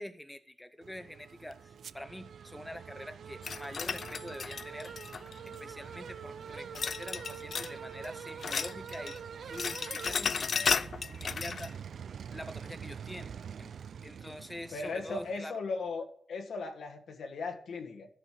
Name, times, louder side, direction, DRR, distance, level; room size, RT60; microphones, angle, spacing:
voice 1, 0.0-4.9 5.4-9.2 9.4-11.8 12.3-13.3 13.6-13.7 14.0-15.5, left 1 dB, 10° left, 0.6 m, -45 dB
sound 1, 0.8-15.4, right 7 dB, 70° right, 0.4 m, -45 dB
sound 2, 3.4-5.5 6.7-7.8 8.0-9.2 9.4-11.7, left 6 dB, 55° left, 0.4 m, -34 dB
voice 2, 14.7-18.1, left 3 dB, 75° left, 1.6 m, -37 dB
13.5 x 5.1 x 5.1 m
cardioid pair, 100°, 0 cm